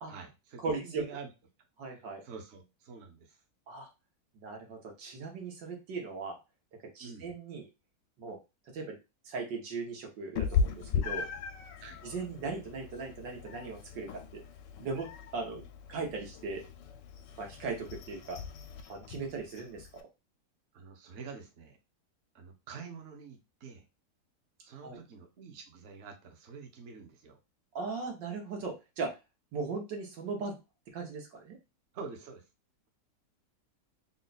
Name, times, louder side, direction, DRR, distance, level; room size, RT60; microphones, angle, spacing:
voice 1, 0.1-1.3 2.2-3.4 7.0-7.3 11.8-12.0 20.7-21.8 22.3-23.9 24.6-27.4 31.9-32.4, right 5 dB, 50° right, 3 dB, 0.9 m, -47 dB
voice 2, 0.6-1.0 1.8-2.2 3.7-3.9 4.4-6.4 7.0-7.6 8.2-8.4 8.7-9.0 9.3-11.3 12.0-14.2 14.8-15.6 15.9-16.6 17.4-18.4 18.9-20.0 24.8-25.0 27.8-29.2 29.5-30.6 30.9-31.6, right 4 dB, 90° right, 1 dB, 1.8 m, -38 dB
Meow, 10.4-20.0, left 6 dB, 85° left, 1.2 m, -37 dB
3.8 x 2.3 x 4.0 m, 0.26 s
omnidirectional pair, 1.9 m